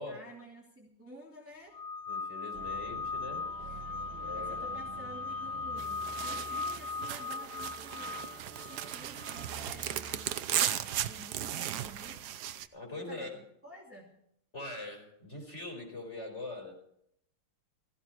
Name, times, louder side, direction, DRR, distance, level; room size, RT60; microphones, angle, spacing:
voice 1, 0.0-1.8 3.6-12.3 13.0-14.2, right 1 dB, 5° right, -3 dB, 2.8 m, -52 dB
sound 1, 1.7-9.5, left 4 dB, 50° left, 0.9 m, -39 dB
voice 2, 2.1-3.8 4.2-4.7 12.7-13.4 14.5-16.7, left 2 dB, 30° left, 2 dB, 5.1 m, -42 dB
sound 2, 2.5-10.2, right 5 dB, 80° right, 1.8 m, -50 dB
sound 3, 5.8-12.7, right 11 dB, 65° right, 1.1 m, -36 dB
16.0 x 15.5 x 4.6 m, 0.73 s
omnidirectional pair, 2.2 m